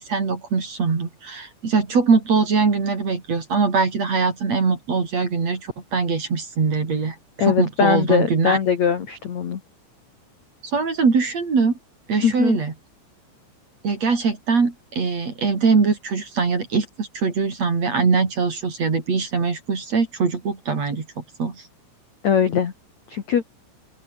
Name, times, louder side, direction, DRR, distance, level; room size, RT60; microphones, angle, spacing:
voice 1, 0.0-8.6 10.6-11.7 12.1-12.7 13.8-21.6, right 4 dB, 35° right, 4.2 m, -22 dB
voice 2, 7.4-9.6 12.2-12.6 22.2-22.7 23.1-23.4, left 7 dB, 55° left, 2.1 m, -21 dB
omnidirectional pair, 6.0 m